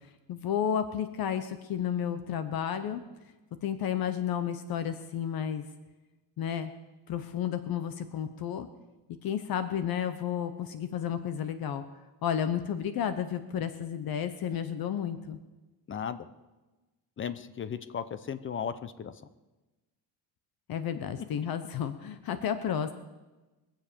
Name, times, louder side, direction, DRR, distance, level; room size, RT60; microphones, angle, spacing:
voice 1, 0.3-3.0 3.6-5.6 6.4-6.7 7.1-8.7 9.2-11.8 12.2-15.4 20.7-22.9, left 9 dB, 55° left, 11 dB, 0.9 m, -32 dB
voice 2, 15.9-16.3 17.2-19.2, left 7 dB, 30° left, 13 dB, 0.7 m, -36 dB
22.5 x 7.7 x 6.8 m, 1.1 s
cardioid pair, 160°, 43 cm